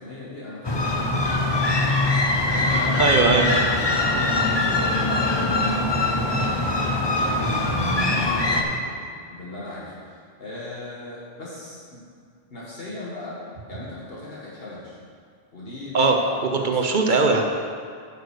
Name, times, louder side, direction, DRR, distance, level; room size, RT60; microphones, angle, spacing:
voice 1, 0.0-1.8 2.4-6.3 6.8-10.1 10.4-12.0 12.5-13.4 13.7-15.0 15.5-16.9, left 2 dB, 70° left, -7 dB, 1.8 m, -37 dB
sound 1, 0.6-8.6, left 2 dB, 30° left, 0.7 m, -22 dB
voice 2, 3.0-3.5 15.9-16.2 16.4-17.4, right 4 dB, 55° right, 3 dB, 0.8 m, -19 dB
8.7 x 6.6 x 4.9 m, 2.1 s
omnidirectional pair, 1.0 m